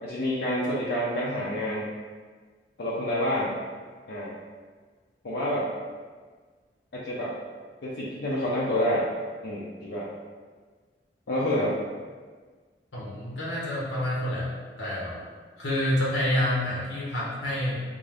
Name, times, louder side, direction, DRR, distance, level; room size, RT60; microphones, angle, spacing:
voice 1, 0.0-1.9 2.8-3.5 4.1-4.3 5.2-5.7 6.9-7.3 7.8-9.1 9.4-10.1 11.3-11.8, equal, 65° left, -6 dB, 0.6 m, -28 dB
voice 2, 12.9-14.5 14.8-15.2 15.6-17.8, left 1 dB, 80° left, -5 dB, 1.0 m, -28 dB
3.7 x 2.6 x 3.3 m, 1.5 s
head